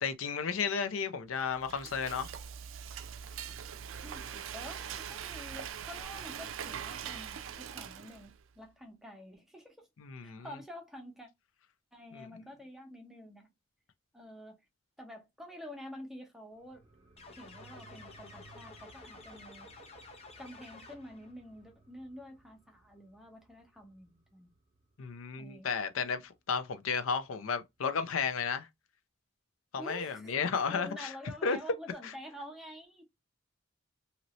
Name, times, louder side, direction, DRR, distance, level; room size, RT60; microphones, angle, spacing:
voice 1, 0.0-2.3 10.0-10.5 12.1-12.3 25.0-28.7 29.7-31.1 31.4-31.6 32.0-32.1, left 5 dB, 85° left, 0.5 m, -33 dB
Frying (food), 1.4-8.4, right 8 dB, 75° right, 0.4 m, -42 dB
voice 2, 4.0-9.9 10.2-11.3 11.9-13.5 14.1-14.6 15.0-16.8 17.4-19.7 20.4-24.5 25.4-25.7 29.8-30.3 30.6-33.0, left 1 dB, ahead, 0.8 m, -48 dB
sound 1, 16.5-25.6 26.0-26.1, right 3 dB, 35° right, 0.7 m, -60 dB
sound 2, 17.2-21.3, left 3 dB, 30° left, 0.7 m, -52 dB
2.8 x 2.7 x 3.0 m
head